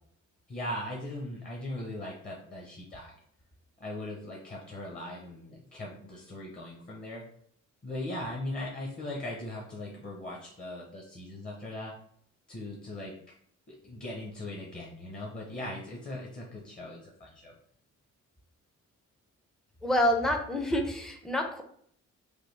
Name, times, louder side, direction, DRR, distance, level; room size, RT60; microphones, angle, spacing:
voice 1, 0.5-3.2 3.8-7.2 7.8-11.9 12.5-13.1 13.7-17.5, left 1 dB, 30° left, -1 dB, 0.8 m, -39 dB
voice 2, 19.8-21.6, left 1 dB, ahead, 4 dB, 0.5 m, -27 dB
3.3 x 2.2 x 3.2 m, 0.63 s
cardioid pair, 90°, 30 cm